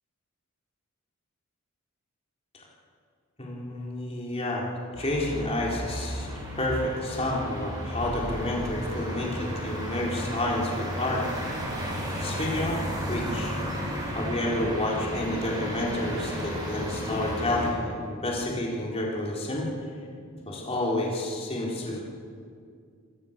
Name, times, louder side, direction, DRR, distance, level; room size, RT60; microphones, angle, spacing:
voice 1, 3.4-4.7 5.0-6.3 6.6-11.2 12.2-12.8 13.1-13.6 14.1-19.7 20.5-22.0, left 1 dB, 25° left, -3 dB, 4.3 m, -30 dB
sound 1, 4.9-17.7, equal, 15° right, 6.7 m, -33 dB
26.5 x 16.5 x 6.9 m, 2.2 s
head